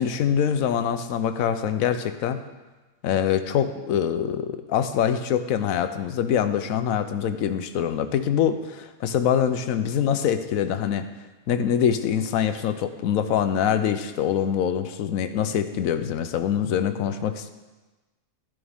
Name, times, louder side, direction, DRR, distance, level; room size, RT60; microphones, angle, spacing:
voice 1, 0.0-2.4 3.0-11.1 11.5-17.5, left 9 dB, 65° left, 10 dB, 1.0 m, -24 dB
12.0 x 11.0 x 3.6 m, 1.2 s
omnidirectional pair, 1.8 m